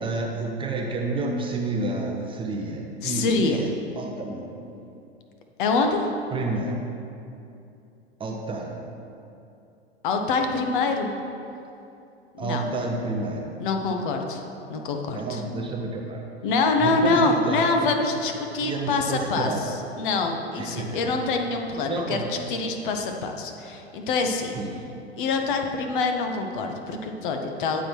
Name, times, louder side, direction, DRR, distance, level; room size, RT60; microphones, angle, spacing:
voice 1, 0.0-3.6 4.0-4.7 6.3-6.7 8.2-8.8 12.4-13.5 15.1-16.2 16.8-17.9 18.6-19.8 20.6-21.2 21.9-22.3 24.5-24.8, right 3 dB, 15° right, 0 dB, 0.6 m, -30 dB
voice 2, 3.0-3.6 5.6-6.1 10.0-11.1 12.3-12.7 13.6-14.4 14.7-15.4 16.4-19.5 20.0-22.2 22.5-24.5 25.2-27.8, left 3 dB, 50° left, 4 dB, 0.9 m, -25 dB
9.1 x 3.7 x 6.0 m, 2.7 s
figure-of-eight pair, 90°, 33 cm